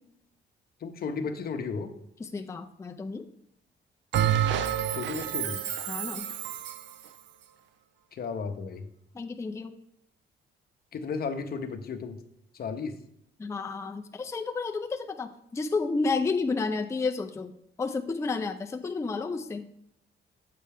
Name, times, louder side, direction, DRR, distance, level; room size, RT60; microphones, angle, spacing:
voice 1, 0.8-1.9 5.0-5.6 8.1-8.9 10.9-12.2 12.5-13.0, left 5 dB, 50° left, 8 dB, 0.7 m, -34 dB
voice 2, 2.2-3.2 5.9-6.3 9.1-9.7 13.4-17.5 17.8-19.7, left 4 dB, 15° left, 4 dB, 0.4 m, -31 dB
Bell, 4.1-6.9, right 10 dB, 70° right, 0.4 m, -28 dB
7.6 x 4.3 x 3.4 m, 0.75 s
cardioid pair, 90°, 20 cm